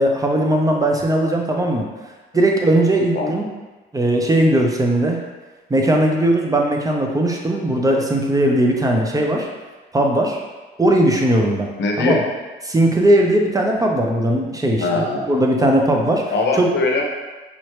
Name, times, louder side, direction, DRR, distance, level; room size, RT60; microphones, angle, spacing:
voice 1, 0.0-1.8 2.3-3.4 3.9-5.2 5.7-9.5 9.9-10.4 10.8-11.7 12.0-12.2 12.7-14.9 15.3-16.2 16.6-16.7, right 1 dB, 15° right, 1 dB, 0.7 m, -18 dB
voice 2, 11.8-12.3 14.8-15.3 15.6-15.7 16.3-17.0, left 3 dB, 60° left, 1 dB, 0.9 m, -21 dB
5.4 x 3.1 x 3.1 m, 1.2 s
cardioid pair, 90°, 20 cm